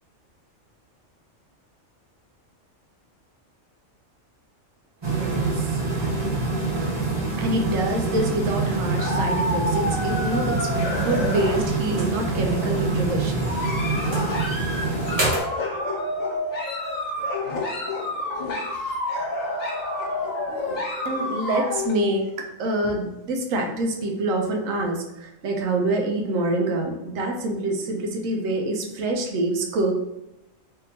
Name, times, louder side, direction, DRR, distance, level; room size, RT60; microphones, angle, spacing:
sound 1, 5.0-15.4, right 3 dB, 35° right, 0.5 m, -25 dB
voice 1, 5.1-6.1 7.4-13.3 21.0-29.9, right 1 dB, 85° right, 2 dB, 1.1 m, -26 dB
sound 2, 8.5-12.0 12.3-12.9 13.4-21.9, left 1 dB, 85° left, 1.3 m, -29 dB
3.6 x 2.8 x 2.7 m, 0.91 s
omnidirectional pair, 1.4 m